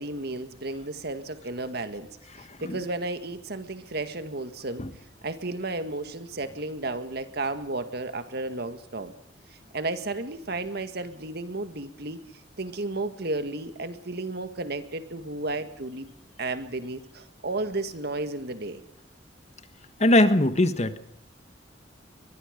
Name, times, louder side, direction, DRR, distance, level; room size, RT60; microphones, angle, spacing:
voice 1, 0.0-2.1 2.4-4.9 5.2-9.1 9.7-12.2 12.6-16.1 16.4-18.8, right 2 dB, 60° right, 9 dB, 1.9 m, -33 dB
voice 2, 20.0-21.0, left 1 dB, 35° left, 11 dB, 1.4 m, -20 dB
22.5 x 22.0 x 5.2 m, 0.67 s
head